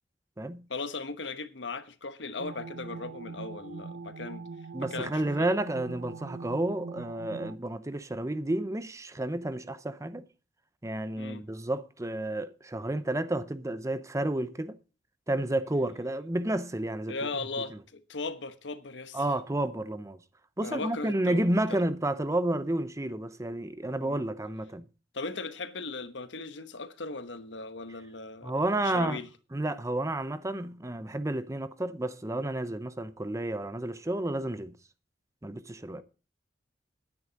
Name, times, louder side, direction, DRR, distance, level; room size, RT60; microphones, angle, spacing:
voice 1, 0.7-4.4 4.8-5.5 11.2-11.4 17.1-19.3 20.6-21.4 21.7-21.8 24.0-24.2 25.1-28.6 28.8-29.3, left 3 dB, 85° left, 1.2 m, -38 dB
sound 1, 2.4-7.6, right 4 dB, 85° right, 0.6 m, -42 dB
voice 2, 4.7-10.2 10.8-14.8 15.3-17.2 19.1-20.2 20.6-24.8 28.4-29.2 29.5-34.8 35.4-36.0, right 1 dB, 15° right, 0.7 m, -31 dB
11.0 x 9.7 x 5.1 m
head